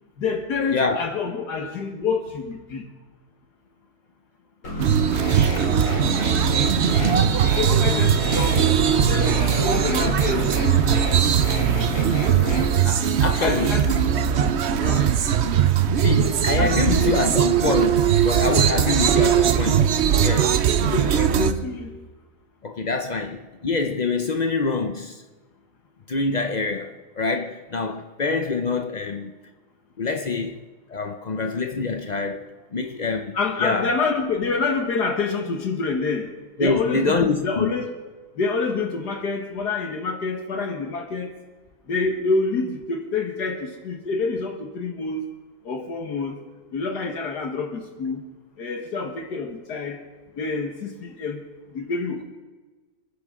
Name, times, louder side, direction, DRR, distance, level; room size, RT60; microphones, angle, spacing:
voice 1, 0.2-2.9 7.6-8.7 9.0-11.1 13.4-14.1 14.8-15.1 16.6-16.8 17.1-17.2 19.1-19.3 20.8-22.1 33.3-36.3 36.6-38.0 38.4-41.3 41.9-45.3 45.6-46.4 46.7-48.2 48.6-50.0 50.4-51.4 51.7-52.2, left 4 dB, 65° left, 1.9 m, -27 dB
sound 1, 4.6-12.6, left 1 dB, 45° left, 3.4 m, -29 dB
sound 2, 4.8-21.5, right 8 dB, 60° right, 0.7 m, -20 dB
voice 2, 7.0-7.4 12.8-13.8 16.0-20.5 22.6-25.2 26.1-29.3 30.0-30.6 30.9-33.9 36.6-37.7, left 4 dB, 85° left, 0.3 m, -26 dB
29.0 x 9.9 x 3.7 m
omnidirectional pair, 1.8 m